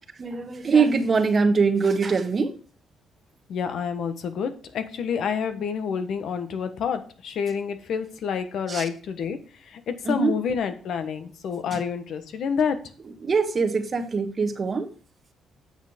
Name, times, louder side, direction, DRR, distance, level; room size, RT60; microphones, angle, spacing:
voice 1, 0.2-2.5 8.7-8.8 10.0-10.4 13.2-14.9, right 4 dB, 40° right, 8 dB, 1.3 m, -22 dB
voice 2, 3.5-9.4 9.9-12.8, left 6 dB, 70° left, 9 dB, 1.3 m, -28 dB
8.1 x 6.5 x 5.2 m, 0.40 s
cardioid pair, 90°, 0 cm